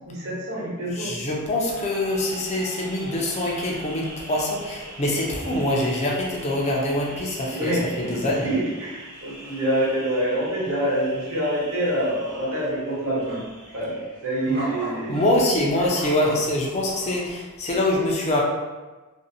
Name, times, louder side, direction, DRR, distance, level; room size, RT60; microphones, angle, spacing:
voice 1, 0.1-1.1 5.2-5.3 7.4-13.4 13.7-15.2, right 1 dB, 65° right, -7 dB, 0.9 m, -26 dB
voice 2, 0.9-7.7 8.0-8.5 15.1-18.4, left 1 dB, 30° left, -2 dB, 0.4 m, -24 dB
sound 1, 1.7-17.3, right 1 dB, 45° right, 0.6 m, -41 dB
2.5 x 2.0 x 2.6 m, 1.2 s
head